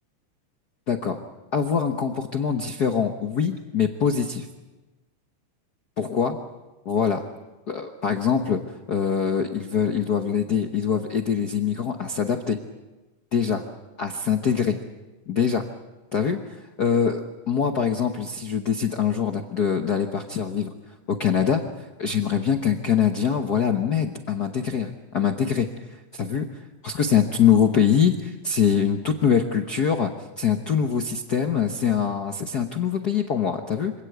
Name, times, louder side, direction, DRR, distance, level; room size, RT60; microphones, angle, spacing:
voice 1, 0.9-1.2 1.5-4.5 6.0-6.3 6.8-7.2 7.7-8.6 8.9-12.6 13.3-13.6 14.0-14.8 15.3-15.6 16.1-20.7 21.1-25.7 26.1-26.5 26.8-30.1 30.4-33.9, left 7 dB, 80° left, 5 dB, 0.8 m, -23 dB
26.0 x 17.5 x 8.0 m, 1.1 s
omnidirectional pair, 3.6 m